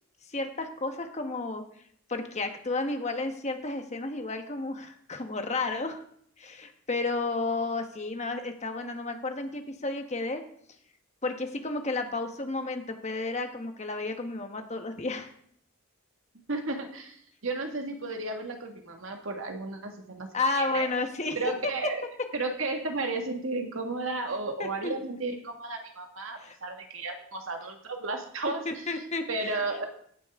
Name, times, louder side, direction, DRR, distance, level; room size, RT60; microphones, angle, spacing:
voice 1, 0.3-1.6 2.1-6.0 6.4-10.4 11.2-15.3 20.3-21.4 24.6-24.9 26.4-26.6 28.6-29.6, left 3 dB, 35° left, 5 dB, 1.4 m, -32 dB
voice 2, 16.5-20.3 20.6-20.9 21.4-22.0 22.3-28.8 29.3-29.9, right 3 dB, 75° right, 3 dB, 1.9 m, -33 dB
16.0 x 9.5 x 3.7 m, 0.65 s
head